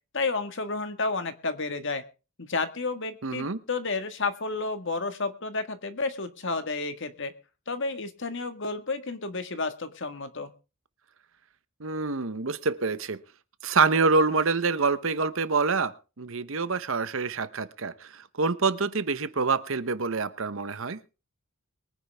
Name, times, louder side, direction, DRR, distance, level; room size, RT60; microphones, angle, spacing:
voice 1, 0.1-2.0 2.4-7.3 7.7-10.5, left 3 dB, 55° left, 1.7 m, -31 dB
voice 2, 3.2-3.6 11.8-13.2 13.6-21.0, right 4 dB, 60° right, 1.0 m, -26 dB
23.0 x 9.9 x 3.5 m
head